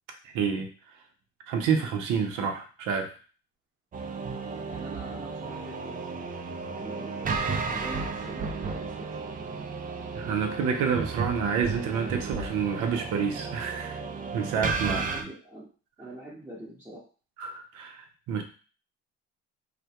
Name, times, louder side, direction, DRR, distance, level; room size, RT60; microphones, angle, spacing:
voice 1, 0.2-0.7 1.5-3.1 10.1-14.0 14.3-15.2 17.4-18.4, right 6 dB, 75° right, 4 dB, 0.6 m, -28 dB
sound 1, 3.9-15.2, right 4 dB, 30° right, 0.4 m, -33 dB
voice 2, 4.5-6.1 6.7-7.3 7.7-9.1 14.9-15.7 16.0-17.1, right 1 dB, 10° right, -8 dB, 0.8 m, -43 dB
2.2 x 2.1 x 2.8 m, 0.38 s
supercardioid pair, 70°, 31 cm